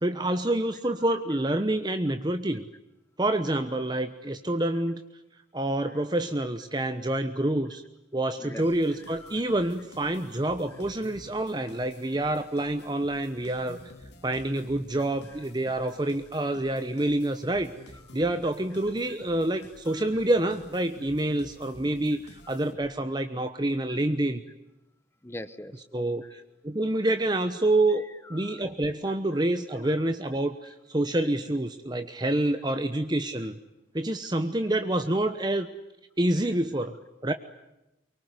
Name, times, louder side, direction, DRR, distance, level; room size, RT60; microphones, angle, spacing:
voice 1, 0.0-2.6 3.2-5.0 5.5-7.8 8.1-13.8 14.2-17.7 18.1-24.4 25.9-28.0 28.3-33.6 33.9-35.7 36.2-36.9 37.2-37.3, right 1 dB, 25° right, 9 dB, 1.0 m, -27 dB
sound 1, 8.6-23.2, left 1 dB, 75° left, 2.1 m, -51 dB
voice 2, 9.1-9.6 15.3-15.4 19.6-20.1 22.4-22.6 25.2-25.8 26.2-26.4 27.9-28.6 29.1-29.2 29.8-30.1 30.6-30.7 35.6-35.7, left 1 dB, 15° left, 13 dB, 1.0 m, -45 dB
24.0 x 24.0 x 9.7 m, 0.92 s
head